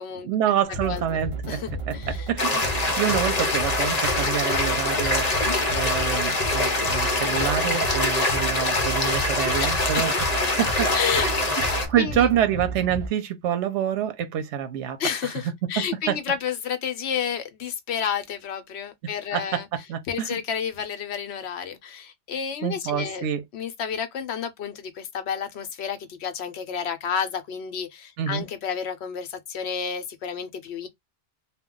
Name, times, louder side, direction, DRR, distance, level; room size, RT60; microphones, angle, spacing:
voice 1, 0.2-1.6 1.9-11.3 11.9-15.0 15.2-15.4 16.1-16.2 19.0-20.3 22.6-23.4 28.2-28.4, right 10 dB, 85° right, 0.9 m, -27 dB
sound 1, 0.6-13.1, right 1 dB, 35° right, 0.6 m, -33 dB
voice 2, 1.5-2.3 9.6-10.0 10.9-11.3 11.9-12.3 15.0-19.7 20.1-23.3 23.5-30.9, left 7 dB, 75° left, 0.9 m, -30 dB
sound 2, 2.4-11.9, left 2 dB, 40° left, 0.8 m, -24 dB
2.3 x 2.2 x 3.6 m
omnidirectional pair, 1.1 m